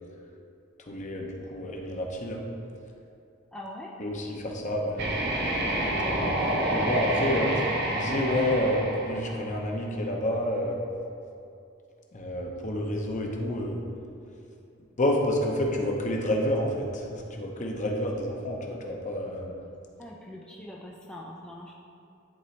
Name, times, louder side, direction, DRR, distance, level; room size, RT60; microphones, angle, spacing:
voice 1, 0.9-2.4 4.0-5.1 5.7-10.8 12.1-13.8 15.0-19.5, left 1 dB, 40° left, 0 dB, 0.8 m, -29 dB
voice 2, 3.5-4.0 6.4-6.8 7.3-7.4 20.0-21.7, left 1 dB, 5° left, -3 dB, 0.4 m, -42 dB
sound 1, 4.9-9.9, right 1 dB, 55° right, 0.9 m, -28 dB
11.0 x 4.0 x 3.2 m, 2.6 s
head